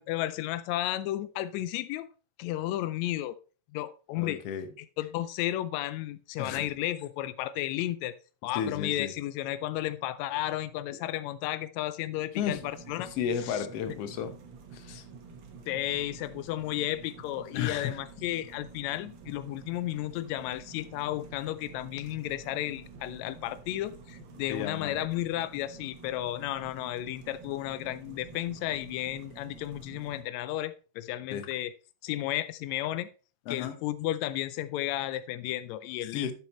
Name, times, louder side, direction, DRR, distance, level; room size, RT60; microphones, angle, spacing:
voice 1, 0.0-2.1 2.4-3.4 3.7-4.4 5.0-8.1 8.4-13.1 13.4-13.7 15.7-31.7 32.0-33.1 33.5-36.3, left 14 dB, 90° left, 1.5 m, -33 dB
voice 2, 4.1-4.7 6.4-6.6 8.5-9.1 12.4-12.6 13.0-14.3 14.7-15.0 17.5-18.0 24.5-25.0 31.3-31.5 33.5-33.8 36.1-36.3, left 8 dB, 65° left, 1.7 m, -33 dB
sound 1, 12.3-30.2, right 4 dB, 55° right, 1.4 m, -49 dB
10.5 x 7.6 x 3.0 m
omnidirectional pair, 3.7 m